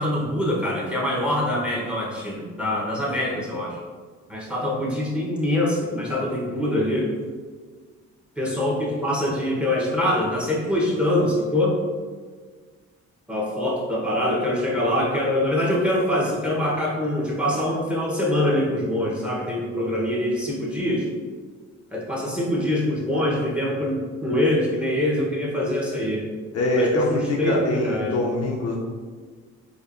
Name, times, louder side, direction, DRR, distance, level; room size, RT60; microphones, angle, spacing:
voice 1, 0.0-3.8 4.3-7.1 8.4-11.8 13.3-21.1 21.9-26.2 26.8-28.1, left 1 dB, 5° right, -5 dB, 0.9 m, -24 dB
voice 2, 26.5-28.8, left 1 dB, 55° left, -1 dB, 0.6 m, -23 dB
4.2 x 2.5 x 2.5 m, 1.5 s
cardioid pair, 90°, 30 cm